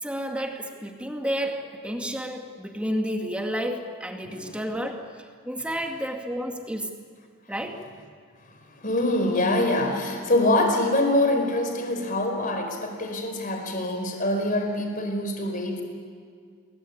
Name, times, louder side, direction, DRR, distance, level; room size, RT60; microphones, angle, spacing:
voice 1, 0.0-6.9 7.5-7.9, equal, 5° right, 3 dB, 2.2 m, -31 dB
voice 2, 4.2-4.6 8.8-15.8, left 1 dB, 40° left, 4 dB, 4.7 m, -24 dB
28.0 x 22.5 x 8.7 m, 2.1 s
head